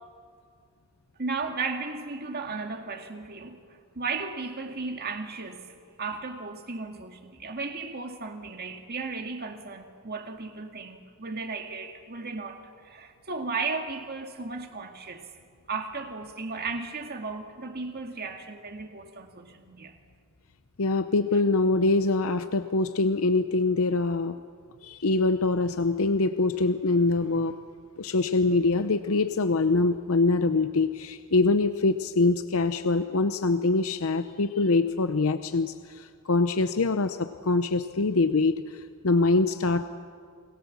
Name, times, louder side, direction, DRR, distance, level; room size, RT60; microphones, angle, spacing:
voice 1, 1.2-3.6 3.9-5.7 6.0-15.3 15.7-20.0, right 4 dB, 45° right, 2.1 m, -35 dB
voice 2, 20.8-24.4 24.8-27.6 28.0-38.6 39.0-39.9, left 3 dB, 70° left, 0.8 m, -24 dB
30.0 x 21.0 x 7.3 m
head